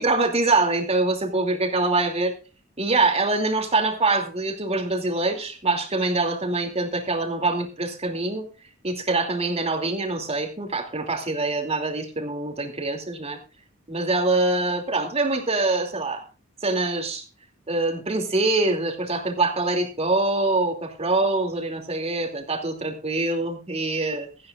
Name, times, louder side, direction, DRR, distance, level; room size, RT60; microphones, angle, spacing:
voice 1, 0.0-2.3 2.8-8.5 8.8-13.4 13.9-16.2 16.6-17.2 17.7-24.3, right 2 dB, 30° right, 4 dB, 2.8 m, -24 dB
17.0 x 14.5 x 2.5 m, 0.32 s
head